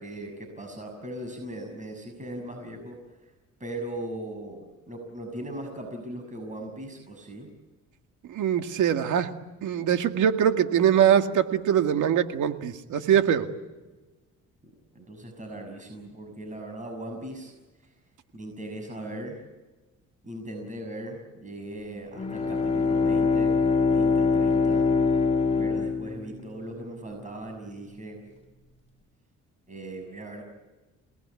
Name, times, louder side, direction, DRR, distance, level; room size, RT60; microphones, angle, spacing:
voice 1, 0.0-3.0 3.6-7.5 14.9-17.5 17.8-17.9 18.3-19.4 20.2-23.5 23.9-24.9 25.6-28.2 29.7-30.4, right 1 dB, 25° right, 4 dB, 6.4 m, -39 dB
voice 2, 8.3-9.3 9.6-13.5, right 9 dB, 80° right, 7 dB, 2.1 m, -22 dB
Bowed string instrument, 22.1-26.7, left 4 dB, 20° left, 3.1 m, -24 dB
28.5 x 19.0 x 9.7 m, 1.2 s
cardioid pair, 90°, 30 cm